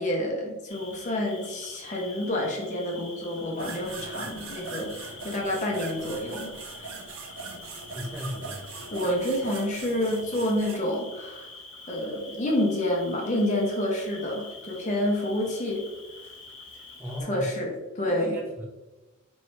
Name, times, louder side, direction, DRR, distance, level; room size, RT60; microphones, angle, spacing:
voice 1, 0.0-6.9 8.9-11.5 11.9-15.9 17.3-18.4, left 1 dB, 35° left, -1 dB, 0.7 m, -28 dB
Cricket, 0.7-17.2, left 3 dB, 60° left, 0.9 m, -46 dB
sound 1, 3.6-10.8, right 4 dB, 80° right, 0.6 m, -41 dB
voice 2, 7.9-8.6 17.0-17.5 18.0-18.6, left 1 dB, 10° right, -3 dB, 0.7 m, -35 dB
4.4 x 3.1 x 3.1 m, 1.1 s
head